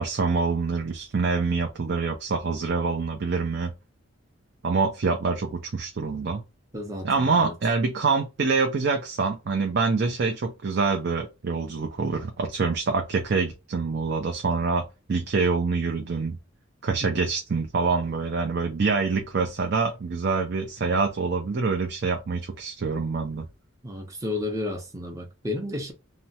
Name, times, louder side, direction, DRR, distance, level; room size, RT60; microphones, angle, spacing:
voice 1, 0.0-3.7 4.6-6.4 7.0-16.4 16.8-23.5, right 4 dB, 55° right, 0.5 m, -26 dB
voice 2, 6.7-7.5 17.0-17.3 23.8-25.9, left 2 dB, 15° right, 0.7 m, -32 dB
2.8 x 2.1 x 2.7 m
head